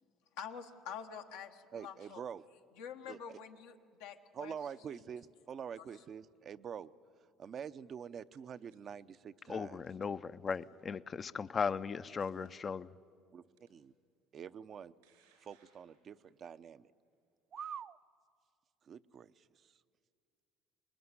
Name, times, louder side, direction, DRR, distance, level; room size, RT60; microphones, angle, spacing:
voice 1, 0.4-2.2 2.8-4.6, left 7 dB, 85° left, 1.4 m, -47 dB
voice 2, 1.7-2.4 3.1-3.4 4.3-6.9 7.4-9.8 12.3-12.5 13.3-13.9 14.3-14.9 15.4-16.9 17.5-18.0 18.8-19.8, right 7 dB, 50° right, 0.7 m, -46 dB
sound 1, 7.9-8.8 9.8-10.2 10.5-10.8 11.4-11.5 12.0-12.5 13.6-13.7 14.6-16.4, right 7 dB, 85° right, 5.3 m, -72 dB
voice 3, 9.5-12.9, left 5 dB, 35° left, 0.6 m, -37 dB
24.0 x 20.5 x 9.7 m
supercardioid pair, 80°, 0 cm